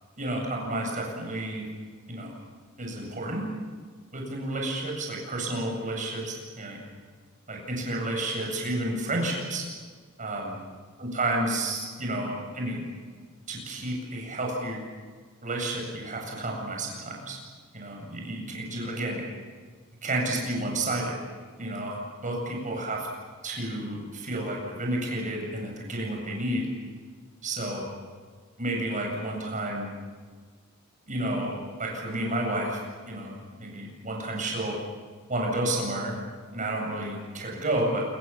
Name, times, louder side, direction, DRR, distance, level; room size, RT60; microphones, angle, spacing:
voice 1, 0.2-1.7 2.1-2.3 2.8-3.4 4.1-6.8 7.5-9.6 10.2-10.5 11.0-12.8 13.5-14.8 15.4-17.4 17.7-19.2 20.0-21.2 21.6-22.0 22.2-23.1 23.4-26.7 27.4-27.9 28.6-29.9 31.1-34.8 35.3-36.1 36.5-38.0, right 1 dB, 40° right, 0 dB, 8.0 m, -31 dB
27.0 x 23.5 x 7.3 m, 1.5 s
head